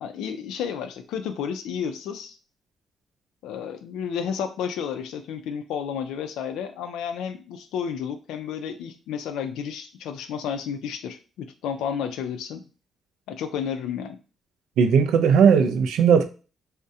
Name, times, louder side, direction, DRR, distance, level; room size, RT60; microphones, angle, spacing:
voice 1, 0.0-2.4 3.4-12.7 13.3-14.2, left 7 dB, 90° left, 0.3 m, -31 dB
voice 2, 14.8-16.3, right 6 dB, 85° right, 0.3 m, -17 dB
2.4 x 2.1 x 2.6 m
cardioid pair, 90°, 0 cm